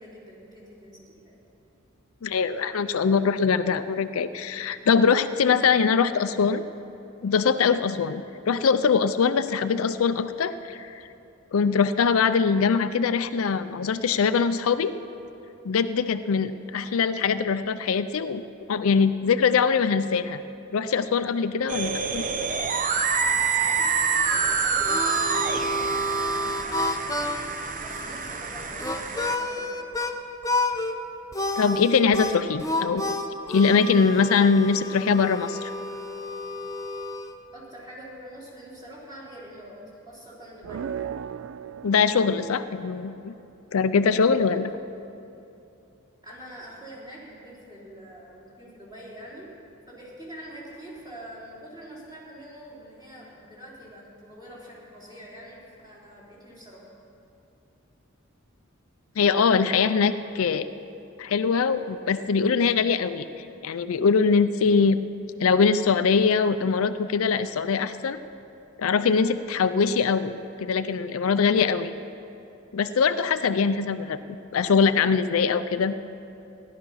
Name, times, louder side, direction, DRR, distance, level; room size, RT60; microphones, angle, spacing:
voice 1, 0.0-1.4 23.5-27.3 27.8-29.9 37.5-39.8 40.1-41.1 44.2-44.5 46.2-49.5 49.9-55.6 55.8-56.9, equal, 20° right, -7 dB, 3.8 m, -45 dB
voice 2, 2.2-6.6 7.2-11.0 11.5-14.9 15.6-18.4 18.7-20.4 20.7-22.2 31.6-33.0 33.5-35.7 41.8-43.3 43.7-44.8 59.2-60.7 61.2-65.0 65.4-68.2 68.8-71.9 72.7-75.9, left 5 dB, 70° left, 11 dB, 0.4 m, -22 dB
sound 1, 21.7-29.4, right 5 dB, 40° right, 0.7 m, -27 dB
Harmonica, 24.3-30.1 30.4-30.9 31.3-37.3, left 1 dB, 15° left, 0.7 m, -30 dB
sound 2, 40.6-43.4, right 8 dB, 65° right, 0.3 m, -37 dB
16.0 x 11.5 x 5.6 m, 2.8 s
head